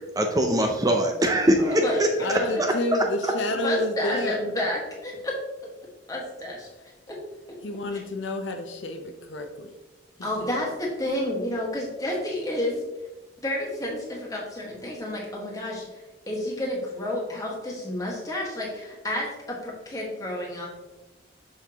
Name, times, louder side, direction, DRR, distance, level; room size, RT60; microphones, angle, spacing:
voice 1, 0.2-2.7, right 1 dB, 20° right, 3 dB, 0.5 m, -22 dB
voice 2, 1.6-2.6 3.6-5.3 6.1-6.7 7.1-7.2 10.2-12.8 13.4-20.7, left 1 dB, 15° left, -2 dB, 1.5 m, -30 dB
voice 3, 2.2-4.4 5.1-5.2 7.6-9.7 10.2-10.6, left 1 dB, 70° left, 5 dB, 0.7 m, -30 dB
6.4 x 5.9 x 2.9 m, 1.1 s
head